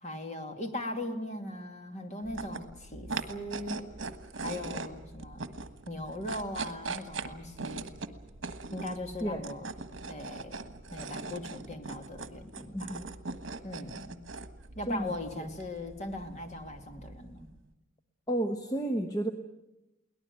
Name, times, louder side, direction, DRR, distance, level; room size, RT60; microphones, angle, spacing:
voice 1, 0.0-3.9 4.4-5.5 5.9-7.9 8.7-9.7 10.1-10.6 10.9-13.0 13.6-14.2 14.8-17.5, left 1 dB, 35° left, 5 dB, 2.5 m, -39 dB
sound 1, 2.2-17.6, right 3 dB, 65° right, 1.4 m, -41 dB
voice 2, 12.7-13.1 14.9-15.1 18.3-19.3, right 1 dB, 20° left, 6 dB, 1.1 m, -31 dB
23.0 x 18.0 x 9.3 m, 0.97 s
head